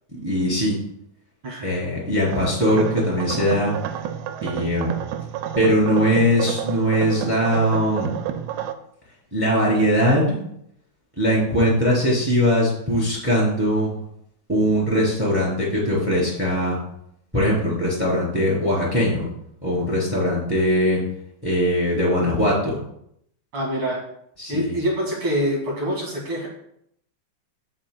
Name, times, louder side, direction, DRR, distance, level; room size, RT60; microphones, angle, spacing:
voice 1, 0.2-0.8 1.6-3.7 4.4-4.9 5.5-8.1 9.3-10.4 11.2-13.9 14.5-16.8 17.3-19.3 19.6-21.0 21.4-22.8 24.4-24.7, equal, 5° right, -4 dB, 1.8 m, -21 dB
voice 2, 1.4-1.8 23.5-24.0 24.5-26.5, equal, 45° right, -3 dB, 1.7 m, -25 dB
sound 1, 2.3-8.7, right 9 dB, 85° right, 2.5 m, -30 dB
11.0 x 7.7 x 2.2 m, 0.74 s
omnidirectional pair, 5.4 m